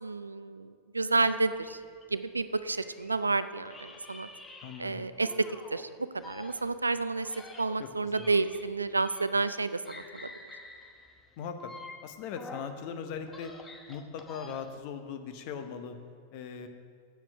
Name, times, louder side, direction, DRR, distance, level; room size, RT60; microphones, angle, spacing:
voice 1, 0.0-1.8 2.1-4.3 4.8-5.3 5.7-5.9 6.1-7.3 7.6-10.3, right 3 dB, 80° right, 13 dB, 0.4 m, -30 dB
sound 1, 1.1-3.2 3.6-5.8 6.2-9.6 9.8-12.8 13.2-14.9, left 3 dB, 15° left, 1.0 m, -49 dB
voice 2, 4.6-5.0 7.8-7.9 8.2-8.3 11.4-11.7 12.0-13.5 13.9-15.9 16.3-16.7, left 6 dB, 45° left, 7 dB, 0.9 m, -39 dB
8.1 x 7.4 x 6.9 m, 2.1 s
figure-of-eight pair, 90°, 0 cm